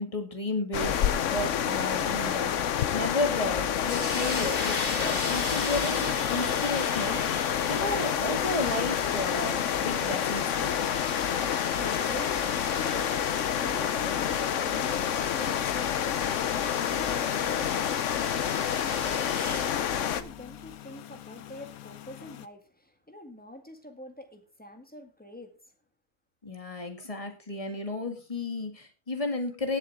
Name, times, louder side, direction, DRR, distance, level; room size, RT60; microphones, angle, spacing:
voice 1, 0.0-10.8 26.4-29.8, left 2 dB, 25° left, 2.1 m, -33 dB
sound 1, 0.7-20.2, left 9 dB, 65° left, 1.1 m, -28 dB
sound 2, 3.0-22.5, left 12 dB, 80° left, 1.2 m, -47 dB
sound 3, 3.8-19.8, left 2 dB, 40° left, 2.4 m, -38 dB
voice 2, 10.9-25.6, left 1 dB, 5° left, 1.8 m, -45 dB
18.5 x 7.3 x 3.6 m
omnidirectional pair, 1.5 m